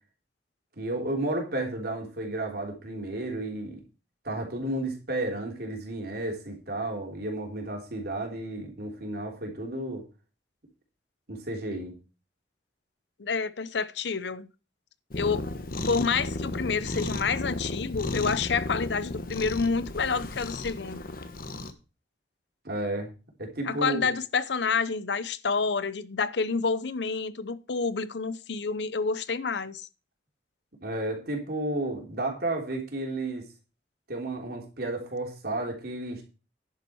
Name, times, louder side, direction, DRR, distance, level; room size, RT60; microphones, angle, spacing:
voice 1, 0.8-3.8 4.2-10.0 11.3-11.9 22.6-23.1 23.4-24.1 30.8-33.5 34.1-36.2, right 2 dB, 60° right, 3.5 m, -32 dB
voice 2, 13.2-14.5 15.1-15.5 15.9-21.0 23.7-29.9, left 5 dB, 75° left, 0.7 m, -28 dB
Cat, 15.1-21.7, left 2 dB, 55° left, 1.2 m, -34 dB
10.5 x 8.5 x 4.6 m
head